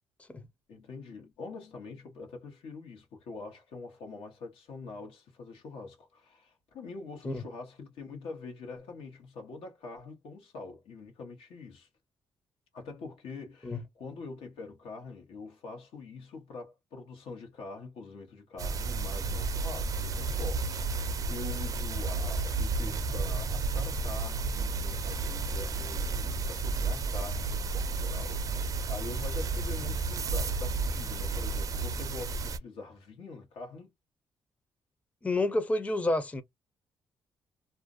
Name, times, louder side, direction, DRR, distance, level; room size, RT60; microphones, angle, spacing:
voice 1, 0.7-11.9 12.7-33.9, left 3 dB, 90° left, 1.1 m, -44 dB
sound 1, 18.6-32.6, right 3 dB, 40° right, 0.4 m, -32 dB
voice 2, 35.2-36.4, left 2 dB, 15° left, 0.5 m, -29 dB
2.4 x 2.1 x 2.4 m
cardioid pair, 120°, 9 cm